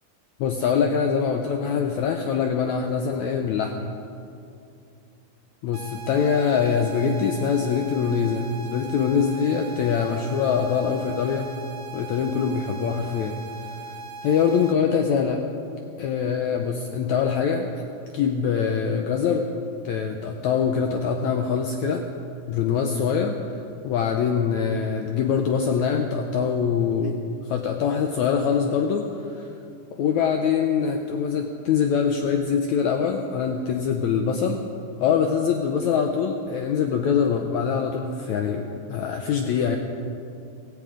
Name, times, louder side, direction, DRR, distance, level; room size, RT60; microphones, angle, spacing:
voice 1, 0.4-3.9 5.6-11.5 11.9-13.4 14.2-15.4 16.0-17.8 18.1-19.5 19.8-22.1 22.5-23.4 23.8-27.2 27.5-29.5 30.0-34.6 35.0-39.8, left 6 dB, 85° left, 4 dB, 1.6 m, -24 dB
sound 1, 5.7-14.7, right 4 dB, 85° right, 1.4 m, -39 dB
17.0 x 16.0 x 5.0 m, 2.6 s
omnidirectional pair, 4.3 m